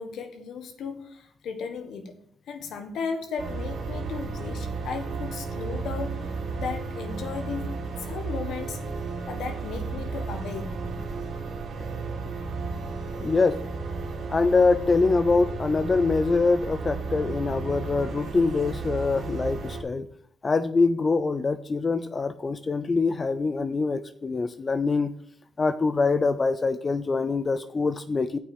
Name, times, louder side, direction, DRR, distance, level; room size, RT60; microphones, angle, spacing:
voice 1, 0.0-2.2 2.5-8.8 9.3-10.8, left 5 dB, 70° left, 1.4 m, -35 dB
sound 1, 3.4-19.8, right 4 dB, 70° right, 3.2 m, -33 dB
voice 2, 13.2-13.6 14.3-20.1 20.4-25.1 25.6-28.4, left 3 dB, 30° left, 0.5 m, -24 dB
8.0 x 6.1 x 6.0 m
cardioid pair, 90°, 0 cm